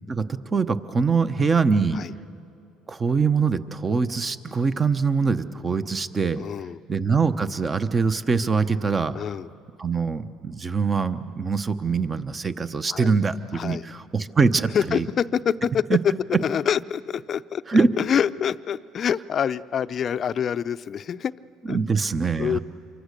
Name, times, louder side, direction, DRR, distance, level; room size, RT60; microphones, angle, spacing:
voice 1, 0.5-2.0 2.9-6.4 6.9-9.2 9.8-15.1 15.9-16.0 16.3-16.4 17.7-17.9 21.7-22.6, right 4 dB, 30° right, 11 dB, 1.0 m, -23 dB
voice 2, 6.4-6.8 9.1-9.5 12.9-13.1 13.5-13.9 14.7-16.1 16.4-17.6 18.0-21.3 21.7-21.8 22.4-22.6, left 8 dB, 45° left, 14 dB, 0.5 m, -26 dB
28.0 x 24.0 x 6.7 m, 2.8 s
supercardioid pair, 85°, 0 cm